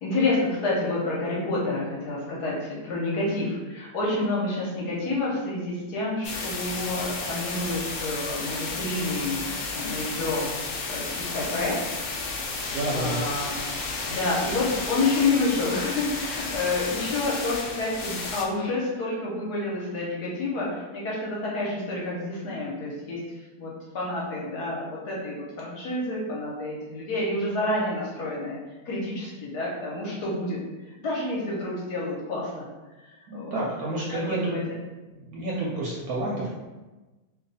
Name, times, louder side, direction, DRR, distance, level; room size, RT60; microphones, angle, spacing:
voice 1, 0.0-10.5 10.9-11.8 12.5-13.5 13.8-28.6 28.8-32.7 33.0-33.6 34.1-34.6, left 2 dB, 65° left, -4 dB, 1.2 m, -29 dB
sound 1, 6.2-18.4, left 3 dB, 85° left, 0.7 m, -32 dB
voice 2, 12.7-13.2 33.3-34.7 35.1-36.5, right 2 dB, 70° right, -4 dB, 0.9 m, -30 dB
3.0 x 2.3 x 3.9 m, 1.2 s
omnidirectional pair, 2.0 m